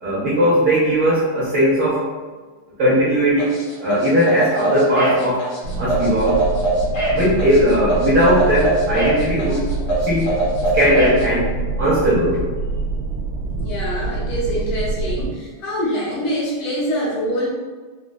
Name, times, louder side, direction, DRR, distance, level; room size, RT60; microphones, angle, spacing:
voice 1, 0.0-2.1 2.8-5.5 5.8-6.4 7.1-9.6 10.1-10.3 10.7-11.5 11.8-12.4, equal, 60° right, -8 dB, 1.0 m, -18 dB
sound 1, 3.4-11.2, right 1 dB, 55° left, 1.0 m, -22 dB
sound 2, 5.6-15.3, right 3 dB, 80° right, 1.4 m, -26 dB
voice 2, 13.6-17.5, equal, 80° left, -6 dB, 1.8 m, -24 dB
4.2 x 2.1 x 2.3 m, 1.4 s
omnidirectional pair, 2.4 m